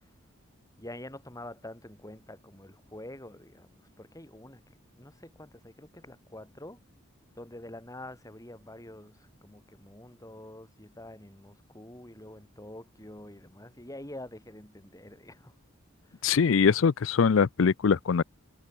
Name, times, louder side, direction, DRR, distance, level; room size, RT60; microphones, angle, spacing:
voice 1, 0.8-4.6 4.9-6.8 7.4-15.6, left 1 dB, 15° left, 4.0 m, -46 dB
voice 2, 16.2-18.2, left 6 dB, 65° left, 0.5 m, -22 dB
head